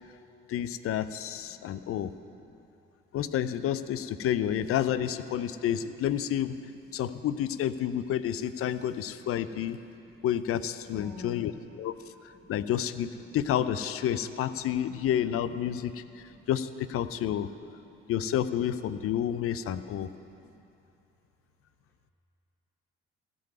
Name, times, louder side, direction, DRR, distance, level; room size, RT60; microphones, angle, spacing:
voice 1, 0.5-2.1 3.1-6.6 6.9-9.8 10.2-11.5 11.8-11.9 12.5-17.5 18.1-20.1, left 10 dB, 50° left, 13 dB, 0.6 m, -30 dB
voice 2, 2.1-2.6 6.9-7.0 9.2-9.3 9.8-10.3 10.9-11.6 12.4-12.5 14.6-14.7 15.7-16.5 17.7-18.0 19.3-20.6, left 2 dB, 5° left, -1 dB, 1.3 m, -51 dB
15.0 x 5.5 x 9.4 m, 2.8 s
hypercardioid pair, 55°, 29 cm